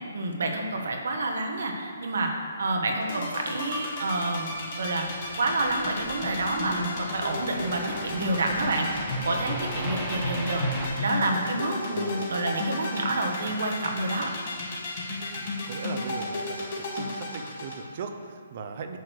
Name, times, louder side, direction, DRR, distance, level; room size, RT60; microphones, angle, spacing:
voice 1, 0.1-2.3 2.6-4.5 4.8-5.1 5.4-8.9 9.2-10.7 11.0-14.3, right 2 dB, 75° right, 2 dB, 1.1 m, -28 dB
sound 1, 3.0-17.8, left 2 dB, 45° left, 1.8 m, -33 dB
sound 2, 4.5-10.9, right 1 dB, 10° right, 1.0 m, -39 dB
voice 2, 11.9-12.3 15.4-16.7 16.9-19.0, right 5 dB, 45° right, 6 dB, 0.6 m, -38 dB
9.3 x 3.2 x 6.3 m, 2.1 s
hypercardioid pair, 150°, 0 cm